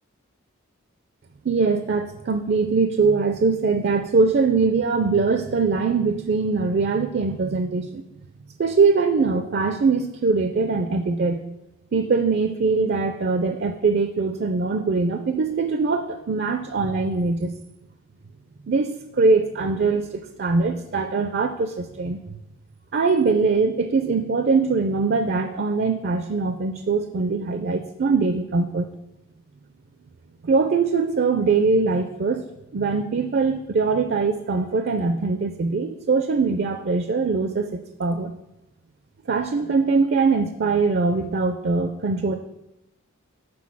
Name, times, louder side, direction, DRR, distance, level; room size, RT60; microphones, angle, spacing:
voice 1, 1.4-8.0 8.6-11.4 11.9-17.5 18.7-22.2 22.9-28.9 30.4-37.7 38.0-38.3 39.3-42.4, right 4 dB, 50° right, 7 dB, 0.4 m, -22 dB
6.1 x 4.7 x 6.0 m, 0.94 s
head